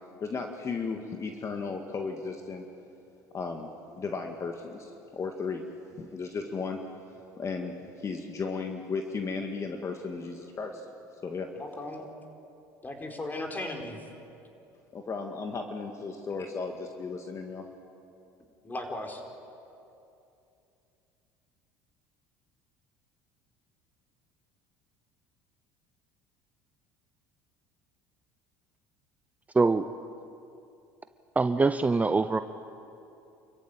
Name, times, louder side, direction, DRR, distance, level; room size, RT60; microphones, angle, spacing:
voice 1, 0.2-2.7 3.3-3.7 4.0-5.6 5.9-6.8 7.4-10.8 11.2-11.5 14.9-17.6, left 4 dB, 35° left, 3 dB, 1.9 m, -35 dB
voice 2, 11.5-12.1 12.8-14.1 18.6-19.2, left 2 dB, 20° left, 2 dB, 4.4 m, -36 dB
voice 3, 29.5-29.9 31.4-32.4, right 3 dB, 20° right, 10 dB, 0.7 m, -23 dB
28.0 x 14.5 x 9.2 m, 2.7 s
supercardioid pair, 80°, 9 cm